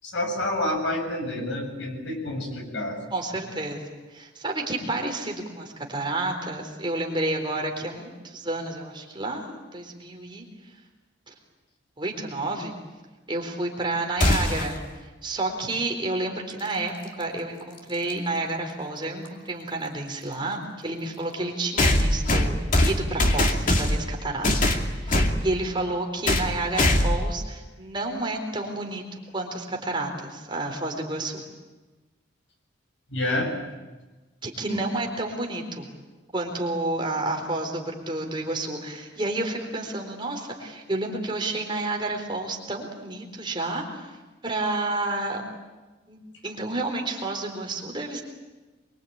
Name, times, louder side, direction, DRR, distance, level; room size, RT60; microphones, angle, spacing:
voice 1, 0.0-3.0 33.1-33.5 34.7-34.8, left 1 dB, 65° left, 2 dB, 7.5 m, -28 dB
voice 2, 3.1-10.4 11.3-11.4 12.0-12.7 13.3-22.6 22.8-24.6 25.0-31.4 34.4-35.9 36.3-44.1 44.4-45.4 46.1-48.2, right 2 dB, 25° right, 1 dB, 4.2 m, -30 dB
sound 1, 14.2-14.8 16.9-17.0 18.1-18.2 21.8-24.1 24.4-25.4 26.3-26.5 26.8-27.3, left 1 dB, 45° left, 2.6 m, -21 dB
25.5 x 24.0 x 8.9 m, 1.2 s
head